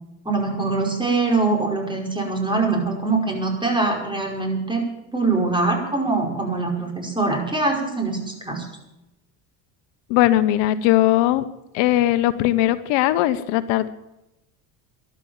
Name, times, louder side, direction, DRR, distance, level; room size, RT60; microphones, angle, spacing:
voice 1, 0.3-4.8 5.1-8.7, right 3 dB, 10° right, 1 dB, 5.4 m, -23 dB
voice 2, 10.1-11.5 11.7-13.9, left 14 dB, 75° left, 12 dB, 1.1 m, -19 dB
13.0 x 12.0 x 7.3 m, 0.91 s
supercardioid pair, 105°, 44 cm